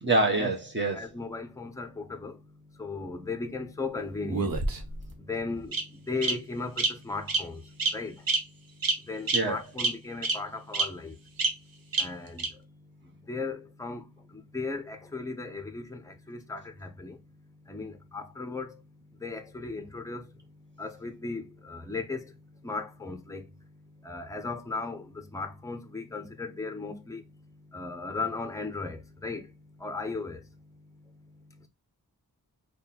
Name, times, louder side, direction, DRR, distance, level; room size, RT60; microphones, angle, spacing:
voice 1, 0.0-1.0 9.3-9.6, right 2 dB, 30° right, 1.1 m, -26 dB
voice 2, 0.9-2.3 2.8-4.5 5.3-7.6 7.9-8.2 9.1-11.2 12.0-12.5 13.3-14.1 14.3-17.2 17.7-18.8 19.2-20.2 20.8-22.2 22.6-23.4 24.0-27.2 27.7-29.4 29.8-30.4, left 3 dB, 10° left, 0.6 m, -36 dB
Bird vocalization bird call bird song, 4.3-5.1 5.7-5.8 6.2-6.3 6.8-6.9 7.3-7.4 7.8-7.9 8.3-8.4 8.8-9.0 9.3-9.4 9.8-9.9 10.2-10.3 10.7-10.8 11.4-11.5 11.9-12.0 12.4-12.5, right 3 dB, 70° right, 0.9 m, -26 dB
3.6 x 2.3 x 4.2 m
wide cardioid pair, 105°, 36 cm